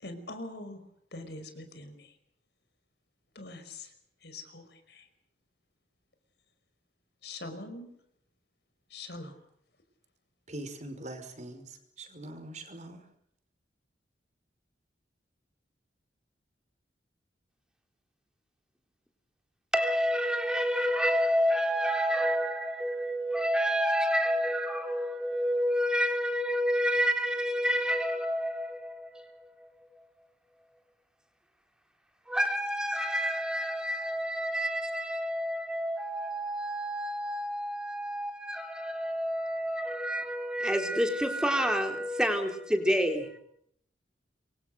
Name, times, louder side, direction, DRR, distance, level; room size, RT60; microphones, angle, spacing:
voice 1, 0.0-0.8 1.1-2.1 3.4-3.9 4.2-5.0 7.2-7.9 8.9-9.3, left 2 dB, 65° left, 5.3 m, -43 dB
voice 2, 10.5-13.1, right 1 dB, 40° right, 5.3 m, -43 dB
voice 3, 19.7-29.7 32.3-43.4, equal, 5° right, 3.9 m, -29 dB
27.5 x 24.0 x 6.6 m
head